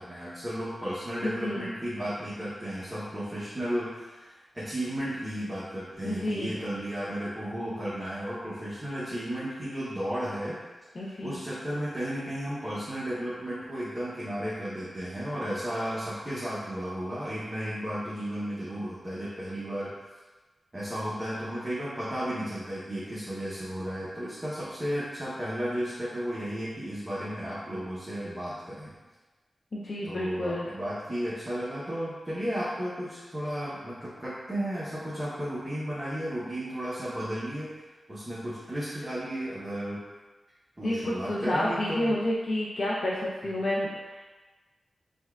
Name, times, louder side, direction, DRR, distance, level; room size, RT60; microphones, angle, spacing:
voice 1, 0.0-10.6 10.9-20.1 20.7-28.9 30.0-37.8 38.1-40.0 40.8-42.2 43.4-43.5, equal, 20° right, -11 dB, 0.8 m, -34 dB
voice 2, 1.2-1.7 6.0-6.5 11.0-11.4 29.7-30.7 40.8-44.2, left 1 dB, 50° left, -5 dB, 0.4 m, -30 dB
5.2 x 2.3 x 2.3 m, 1.3 s
wide cardioid pair, 130°, 0 cm